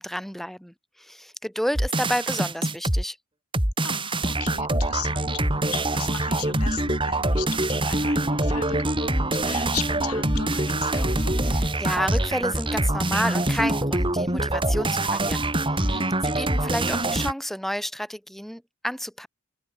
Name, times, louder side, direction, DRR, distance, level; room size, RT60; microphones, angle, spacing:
voice 1, 0.0-3.2 11.5-15.9 16.2-19.3, equal, ahead, 3.5 m, -30 dB
sound 1, 1.8-3.0 3.5-17.3, right 1 dB, 20° right, 4.3 m, -24 dB
voice 2, 3.8-11.3 15.8-16.1, left 8 dB, 90° left, 4.4 m, -37 dB
head